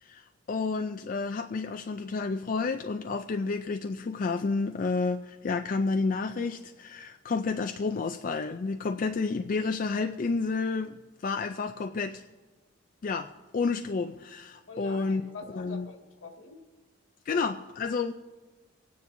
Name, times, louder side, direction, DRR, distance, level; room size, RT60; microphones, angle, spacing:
voice 1, 0.0-10.9 11.2-12.2 13.0-15.2 15.5-15.8 17.3-18.1, left 4 dB, 40° left, 0.4 m, -30 dB
voice 2, 14.7-16.6 17.3-17.5, left 3 dB, 80° left, 2.1 m, -45 dB
26.5 x 9.5 x 2.7 m
head